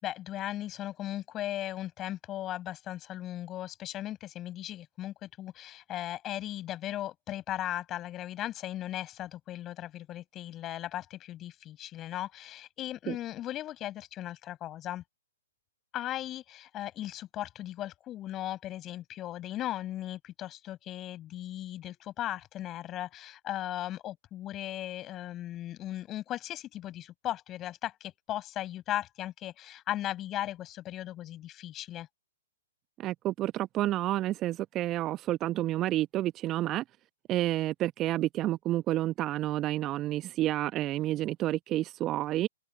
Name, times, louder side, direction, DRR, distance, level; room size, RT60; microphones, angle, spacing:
voice 1, 0.0-15.0 15.9-32.1, left 13 dB, 25° left, 7.0 m, -37 dB
voice 2, 33.0-36.8 37.3-42.5, right 14 dB, 25° right, 1.0 m, -30 dB
figure-of-eight pair, 120°, 0 cm